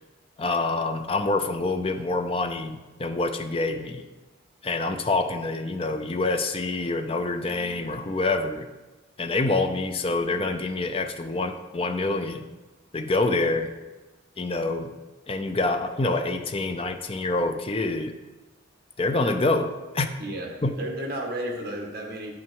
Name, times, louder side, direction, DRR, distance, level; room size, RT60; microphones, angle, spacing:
voice 1, 0.4-4.1 4.6-8.7 9.2-12.4 12.9-13.7 14.4-14.9 15.3-18.2 19.0-20.1 20.6-20.7, left 2 dB, 30° left, 7 dB, 0.5 m, -26 dB
voice 2, 20.2-20.5 20.8-22.3, right 1 dB, 50° right, 0 dB, 1.8 m, -32 dB
10.0 x 6.0 x 4.7 m, 1.2 s
head